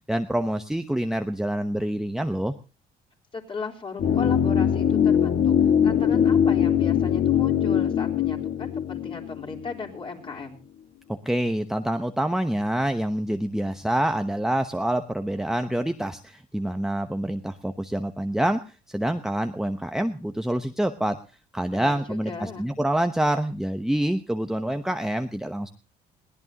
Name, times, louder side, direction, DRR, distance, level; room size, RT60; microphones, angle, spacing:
voice 1, 0.1-2.5 11.1-21.2 21.5-25.7, right 1 dB, 5° right, 6 dB, 1.0 m, -26 dB
voice 2, 3.3-10.6 21.7-22.7, left 4 dB, 30° left, 1 dB, 3.9 m, -37 dB
sound 1, 4.0-10.0 10.3-10.4, left 8 dB, 60° left, 1.9 m, -22 dB
22.0 x 17.0 x 2.9 m, 0.32 s
cardioid pair, 110°, 17 cm